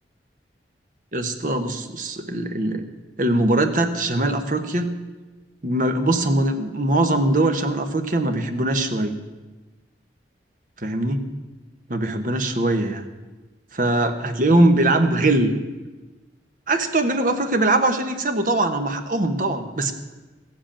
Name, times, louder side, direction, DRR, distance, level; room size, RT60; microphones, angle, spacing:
voice 1, 1.1-2.8 3.2-5.0 5.6-9.2 10.8-11.3 11.9-13.0 13.7-15.5 16.7-19.9, right 2 dB, 45° right, 7 dB, 1.1 m, -21 dB
15.0 x 7.7 x 8.8 m, 1.2 s
head